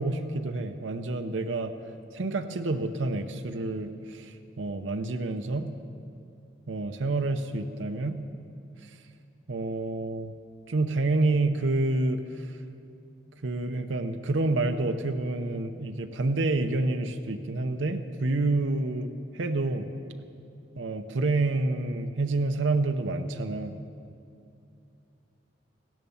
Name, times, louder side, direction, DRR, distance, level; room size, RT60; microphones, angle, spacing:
voice 1, 0.0-1.7 2.1-5.7 6.7-8.2 9.5-10.3 10.7-12.5 13.4-19.9 20.7-23.7, right 2 dB, 85° right, 6 dB, 0.7 m, -28 dB
16.0 x 10.5 x 7.1 m, 2.6 s
head